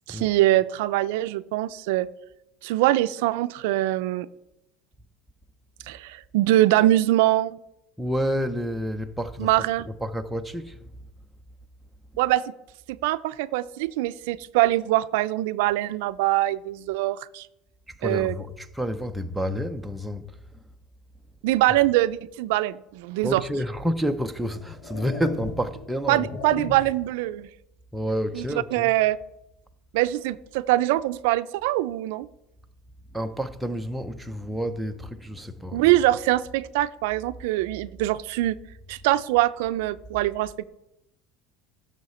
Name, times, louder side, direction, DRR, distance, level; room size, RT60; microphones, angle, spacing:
voice 1, 0.1-2.1 2.6-4.3 5.9-7.6 9.4-9.9 12.2-12.4 12.9-17.5 18.0-18.3 21.4-23.4 26.1-27.5 28.4-28.5 28.7-29.2 29.9-32.3 35.7-38.6 38.9-40.6, right 16 dB, 75° right, 0.4 m, -23 dB
voice 2, 8.0-10.9 17.9-20.6 21.7-21.8 23.2-26.4 27.9-29.0 33.1-36.0, equal, ahead, 0.4 m, -30 dB
sound 1, 23.4-23.6 24.3-27.1, left 4 dB, 75° left, 2.2 m, -38 dB
16.0 x 6.3 x 4.2 m
cardioid pair, 175°, 0 cm